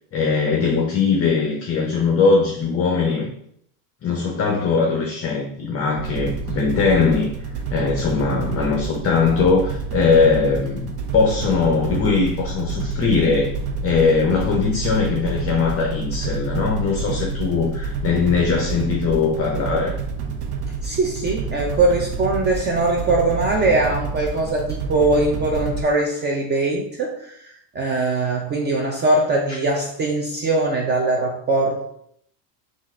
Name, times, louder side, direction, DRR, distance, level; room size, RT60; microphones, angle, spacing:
voice 1, 0.1-3.3 4.0-7.3 7.7-13.5 13.8-20.0, left 4 dB, 30° left, 0 dB, 0.6 m, -20 dB
sound 1, 6.0-25.8, right 4 dB, 75° right, 0.9 m, -28 dB
voice 2, 20.8-31.9, right 2 dB, 25° right, 1 dB, 0.4 m, -21 dB
3.9 x 2.5 x 4.2 m, 0.70 s
supercardioid pair, 120°, 47 cm